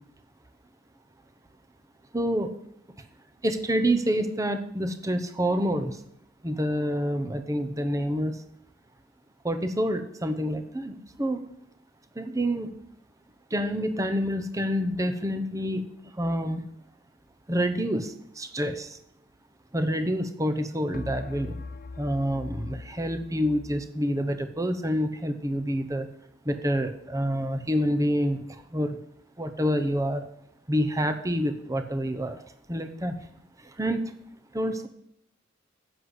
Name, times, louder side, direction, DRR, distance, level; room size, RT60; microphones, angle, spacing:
voice 1, 2.1-2.5 3.4-6.0 6.4-8.4 9.4-11.4 12.1-12.7 13.5-15.9 16.1-16.6 17.5-19.0 19.7-21.5 22.0-26.1 26.4-29.0 29.4-30.2 30.7-32.4 32.7-33.1 33.6-34.1 34.5-34.9, equal, 15° right, 8 dB, 0.9 m, -27 dB
sound 1, 13.5-14.4 20.9-24.0, left 3 dB, 50° left, 0.5 m, -42 dB
10.5 x 8.0 x 8.2 m, 0.73 s
head